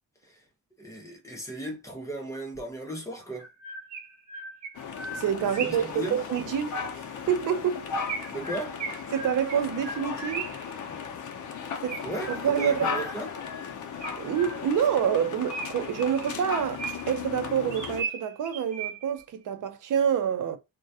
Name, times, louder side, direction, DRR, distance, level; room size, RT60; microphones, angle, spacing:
voice 1, 0.8-3.5 5.6-6.2 8.3-8.8 12.0-13.3, right 1 dB, 10° left, 0.6 m, -36 dB
Chirp tweet, 2.6-2.7 3.3-6.0 8.1-10.7 11.9-13.5 14.0-14.9 15.5-17.2 17.7-19.2, right 4 dB, 60° right, 1.1 m, -38 dB
sound 1, 4.7-18.0, left 6 dB, 70° left, 0.5 m, -36 dB
voice 2, 5.1-7.9 9.1-10.5 11.8-12.0 12.3-13.0 14.2-20.6, right 8 dB, 80° right, 0.5 m, -27 dB
2.2 x 2.1 x 2.6 m
wide cardioid pair, 175°, 31 cm